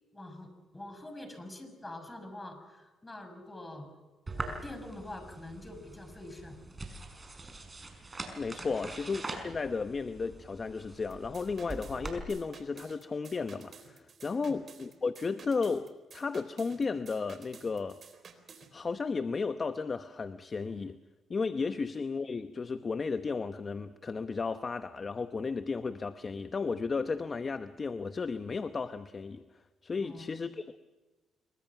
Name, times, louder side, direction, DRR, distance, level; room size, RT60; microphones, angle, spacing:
voice 1, 0.1-3.9 4.3-6.7 8.6-8.7 14.4-14.5 30.0-30.3, left 1 dB, 15° left, 7 dB, 6.4 m, -45 dB
sound 1, 4.3-12.2, right 2 dB, 25° right, 5.4 m, -43 dB
voice 2, 8.4-18.0 18.7-21.0 21.3-29.4 29.8-30.8, left 4 dB, 35° left, 10 dB, 0.9 m, -34 dB
sound 2, 11.1-18.7, right 5 dB, 45° right, 4.0 m, -53 dB
26.0 x 23.5 x 6.0 m, 1.2 s
cardioid pair, 90°, 0 cm